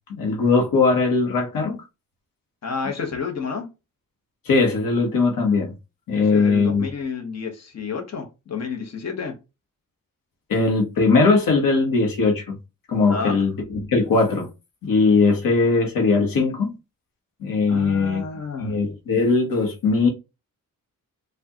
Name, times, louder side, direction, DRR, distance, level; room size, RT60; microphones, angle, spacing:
voice 1, 0.1-1.8 4.5-5.7 6.1-6.9 10.5-12.6 12.9-14.5 14.8-16.7 17.4-18.2 18.6-20.1, left 4 dB, 85° left, 1.1 m, -20 dB
voice 2, 2.6-3.7 6.2-9.3 13.1-13.4 17.7-18.8, left 5 dB, 50° left, 1.1 m, -30 dB
4.5 x 2.4 x 2.8 m
wide cardioid pair, 115°, 33 cm